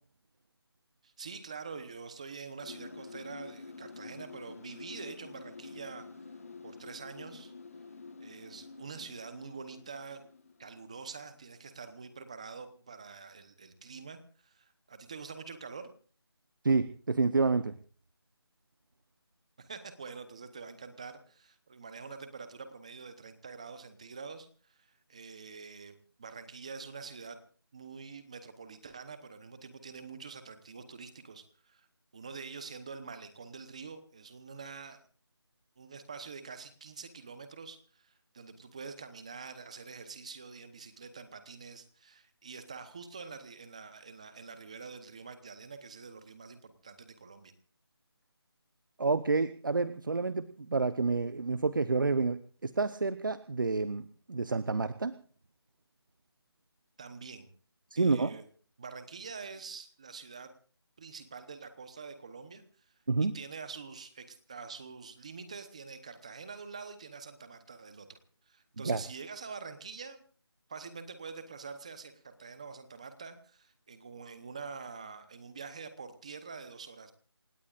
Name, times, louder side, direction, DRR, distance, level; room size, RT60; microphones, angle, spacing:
voice 1, 1.0-6.1 6.6-7.5 8.2-10.2 10.6-15.9 19.6-27.4 27.7-31.9 32.1-35.0 35.8-47.5 57.0-57.5 57.9-58.4 58.8-60.5 61.0-62.9 63.2-68.2 68.5-70.2 70.7-77.1, right 5 dB, 15° right, 11 dB, 0.9 m, -46 dB
sound 1, 2.6-11.5, left 4 dB, 35° left, 1.3 m, -48 dB
voice 2, 16.6-17.7 49.0-54.0 54.3-55.1 57.9-58.3 63.1-63.3 68.8-69.0, right 3 dB, 50° right, 14 dB, 0.8 m, -29 dB
28.0 x 17.5 x 2.5 m, 0.43 s
figure-of-eight pair, 175°, 14 cm